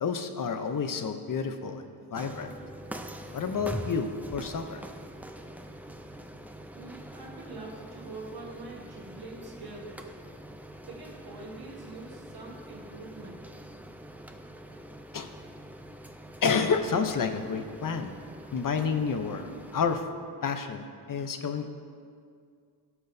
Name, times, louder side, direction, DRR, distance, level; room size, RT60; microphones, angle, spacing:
voice 1, 0.0-2.5 3.3-4.8 15.1-15.3 16.4-18.1 18.5-20.0 20.4-21.7, left 5 dB, 55° left, 7 dB, 0.6 m, -30 dB
sound 1, 2.1-20.0, right 1 dB, 5° right, 0.3 m, -44 dB
voice 2, 6.7-10.1 10.8-13.4, right 3 dB, 65° right, -2 dB, 1.3 m, -44 dB
17.5 x 6.0 x 2.6 m, 2.2 s
wide cardioid pair, 170°, 40 cm